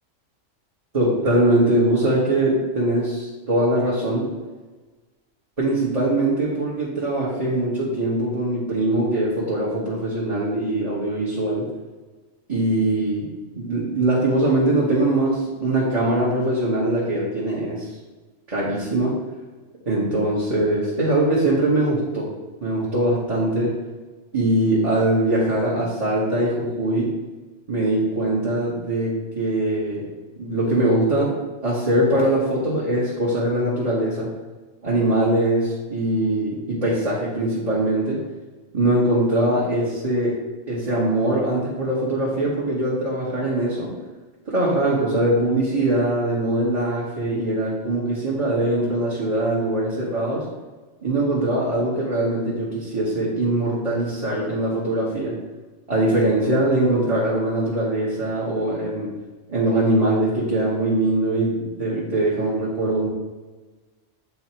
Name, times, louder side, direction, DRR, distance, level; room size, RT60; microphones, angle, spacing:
voice 1, 0.9-4.3 5.6-11.7 12.5-13.3 13.5-17.9 18.5-19.2 19.8-22.3 22.6-23.8 24.3-27.1 27.7-31.4 31.6-34.3 34.8-38.2 38.7-40.4 40.7-43.9 44.4-50.4 51.0-55.3 55.9-59.1 59.5-63.1, right 1 dB, 30° right, -7 dB, 1.3 m, -22 dB
8.1 x 2.8 x 4.4 m, 1.3 s
omnidirectional pair, 1.4 m